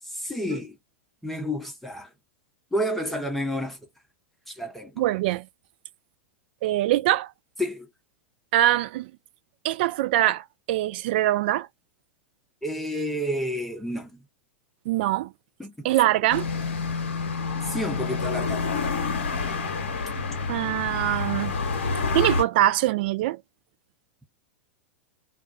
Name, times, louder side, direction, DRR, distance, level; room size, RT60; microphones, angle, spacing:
voice 1, 0.1-0.8 1.2-2.1 2.7-3.8 4.5-5.0 7.6-7.9 12.6-14.2 15.6-15.9 17.6-18.7, equal, 5° left, 0.8 m, -30 dB
voice 2, 5.0-5.4 6.6-7.3 8.5-9.1 9.6-11.7 14.9-15.3 15.8-16.5 20.5-21.5 22.1-23.4, right 14 dB, 55° right, 0.4 m, -23 dB
sound 1, 16.3-22.4, left 4 dB, 70° left, 0.8 m, -28 dB
2.4 x 2.2 x 2.5 m
figure-of-eight pair, 95°, 7 cm